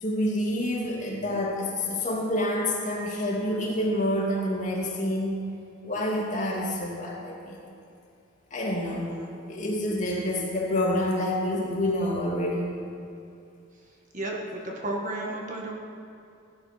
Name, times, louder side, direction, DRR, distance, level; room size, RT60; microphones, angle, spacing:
voice 1, 0.0-5.4 5.8-7.7 8.5-9.1 9.5-12.8, left 1 dB, 40° left, -3 dB, 2.4 m, -28 dB
voice 2, 14.1-15.7, right 1 dB, 40° right, 0 dB, 1.7 m, -33 dB
16.0 x 11.5 x 5.9 m, 2.5 s
head